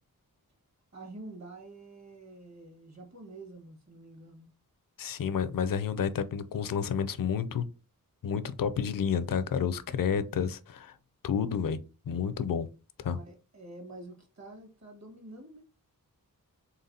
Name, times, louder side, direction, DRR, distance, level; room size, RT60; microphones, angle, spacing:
voice 1, 0.9-4.5 13.1-15.6, right 2 dB, 50° right, 1.7 m, -47 dB
voice 2, 5.0-7.6 8.2-10.9 11.2-11.8 12.1-12.7 13.0-13.2, left 7 dB, 70° left, 0.5 m, -30 dB
4.0 x 3.6 x 2.7 m
wide cardioid pair, 95°, 35 cm